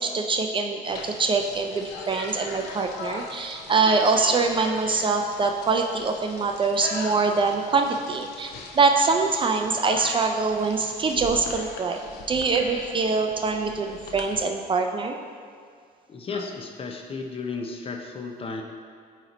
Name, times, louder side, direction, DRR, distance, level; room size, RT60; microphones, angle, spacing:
voice 1, 0.0-8.5 8.8-12.0 12.3-15.2, right 4 dB, 30° right, 4 dB, 0.4 m, -24 dB
sound 1, 0.8-14.4, left 3 dB, 85° left, 0.7 m, -40 dB
voice 2, 16.1-18.6, left 4 dB, 35° left, 3 dB, 0.6 m, -34 dB
9.0 x 3.1 x 4.1 m, 2.1 s
cardioid pair, 110°, 17 cm